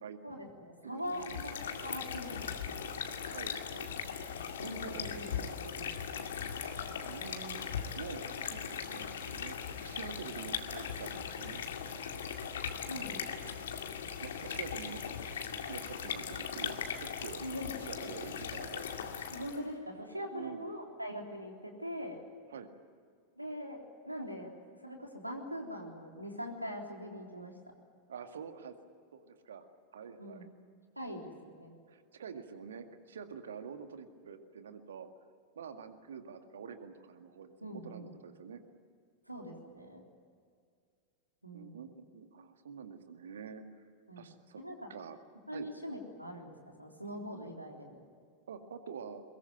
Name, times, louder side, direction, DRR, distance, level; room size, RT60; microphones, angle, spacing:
voice 1, 0.2-3.4 4.6-5.9 12.9-13.5 17.4-17.7 19.3-22.2 23.4-23.8 24.0-27.5 30.2-30.5 31.0-31.7 37.6-38.1 39.3-40.0 41.4-41.8 44.1-44.3 44.6-44.9 45.5-48.0, equal, 90° right, 2 dB, 3.6 m, -42 dB
voice 2, 0.8-1.4 3.2-3.9 4.9-5.2 7.1-11.6 14.2-15.0 15.7-17.4 17.8-18.9 20.3-20.6 22.5-22.7 28.1-28.7 29.1-29.7 29.9-30.5 31.9-35.1 35.6-37.5 37.8-38.6 41.5-43.6 44.2-44.6 44.9-45.2 45.5-45.7 48.5-49.2, right 6 dB, 65° right, 7 dB, 2.1 m, -47 dB
sound 1, 1.0-19.7, left 7 dB, 60° left, 2.2 m, -39 dB
22.5 x 22.0 x 9.2 m, 2.2 s
figure-of-eight pair, 90°, 0 cm